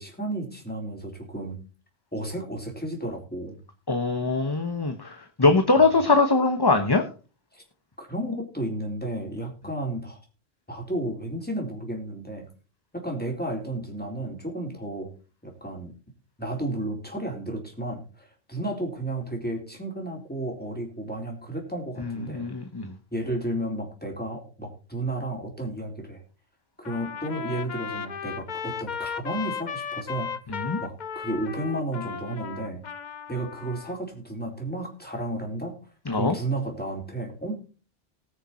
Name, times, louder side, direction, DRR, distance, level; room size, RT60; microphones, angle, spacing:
voice 1, 0.0-1.6 2.1-3.6 5.4-5.5 5.7-5.9 7.5-7.6 8.0-10.2 10.7-12.5 12.9-15.1 15.4-15.9 16.4-22.5 23.1-26.2 26.8-30.3 30.8-32.8 33.3-35.8 36.2-37.6, right 1 dB, 10° left, 0 dB, 4.0 m, -32 dB
voice 2, 3.9-7.0 22.0-22.9 30.5-30.8 36.1-36.4, left 3 dB, 25° left, 7 dB, 1.0 m, -22 dB
Trumpet, 26.8-34.0, left 7 dB, 50° left, 0.9 m, -35 dB
20.0 x 6.6 x 4.3 m, 0.35 s
omnidirectional pair, 1.0 m